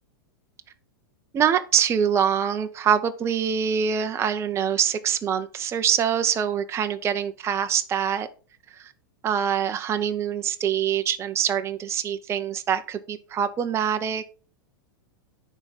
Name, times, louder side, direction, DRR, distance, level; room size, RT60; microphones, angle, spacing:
voice 1, 1.3-8.3 8.7-8.9 9.2-14.2, right 8 dB, 20° right, 8 dB, 0.6 m, -24 dB
9.8 x 3.6 x 5.3 m, 0.37 s
hypercardioid pair, 125°, 12 cm